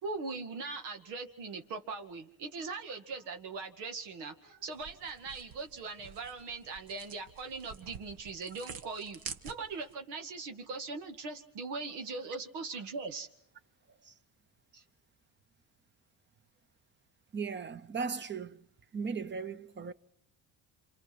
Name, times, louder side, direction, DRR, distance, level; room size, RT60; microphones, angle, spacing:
voice 1, 0.0-13.3 14.7-14.8, right 4 dB, 90° right, 2.2 m, -40 dB
sound 1, 4.7-9.9, right 7 dB, 60° right, 1.6 m, -48 dB
voice 2, 17.3-18.6 18.9-19.9, right 5 dB, 25° right, 0.9 m, -37 dB
27.5 x 27.0 x 6.1 m
cardioid pair, 120°, 40 cm